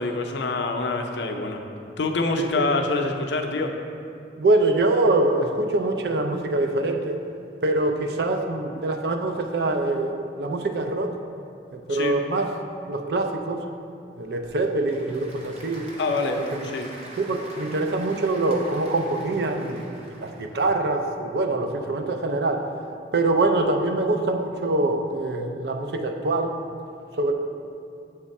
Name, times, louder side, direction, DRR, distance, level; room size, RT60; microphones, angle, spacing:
voice 1, 0.0-1.6 2.0-3.8 11.9-12.2 16.0-16.9, left 3 dB, 75° left, 4 dB, 0.5 m, -26 dB
voice 2, 2.4-2.7 4.4-7.2 7.6-11.2 11.7-12.5 12.9-13.7 14.2-15.9 16.5-16.7 17.2-22.7 23.1-26.6 27.2-27.3, right 2 dB, 60° right, 5 dB, 0.4 m, -24 dB
Applause / Crowd, 14.2-20.7, right 1 dB, 35° right, 0.8 m, -44 dB
7.2 x 3.5 x 4.1 m, 2.5 s
head